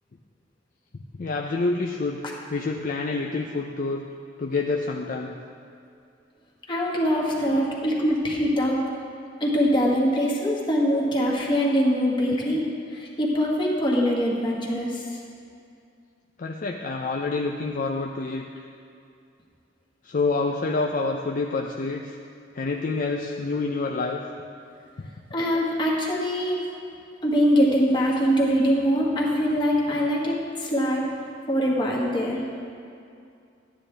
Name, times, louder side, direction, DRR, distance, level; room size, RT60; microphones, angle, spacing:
voice 1, 1.1-2.2 2.5-4.1 4.4-5.3 16.4-18.4 20.0-22.2 22.5-24.2 25.0-25.1, left 3 dB, 45° left, 1 dB, 0.4 m, -27 dB
voice 2, 6.7-8.8 9.4-12.7 12.9-15.2 25.3-26.6 27.2-31.0 31.5-32.4, equal, 25° left, -3 dB, 1.5 m, -23 dB
12.0 x 9.6 x 3.3 m, 2.4 s
head